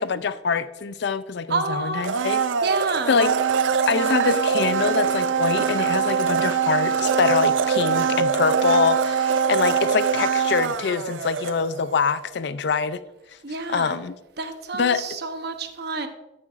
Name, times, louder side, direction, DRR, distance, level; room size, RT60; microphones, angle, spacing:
voice 1, 0.0-2.4 3.1-3.3 3.9-13.0 13.7-14.1 14.8-15.0, left 5 dB, 60° left, 0.4 m, -24 dB
voice 2, 1.5-2.1 2.6-3.2 13.4-14.0 14.4-16.1, right 4 dB, 55° right, 0.8 m, -28 dB
Domestic sounds home sounds, 2.0-12.0 12.3-12.4, right 6 dB, 75° right, 0.5 m, -23 dB
11.5 x 8.6 x 2.5 m
head